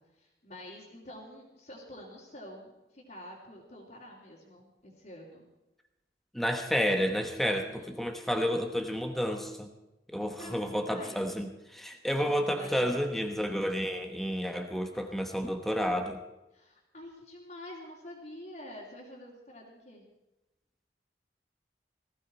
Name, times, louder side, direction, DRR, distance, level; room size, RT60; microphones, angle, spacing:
voice 1, 0.0-5.4 7.5-7.9 10.4-11.3 12.2-13.1 16.5-20.0, left 1 dB, 45° left, -7 dB, 3.2 m, -48 dB
voice 2, 6.3-9.7 10.1-16.2, equal, ahead, 5 dB, 1.0 m, -30 dB
19.0 x 15.0 x 4.5 m, 0.99 s
head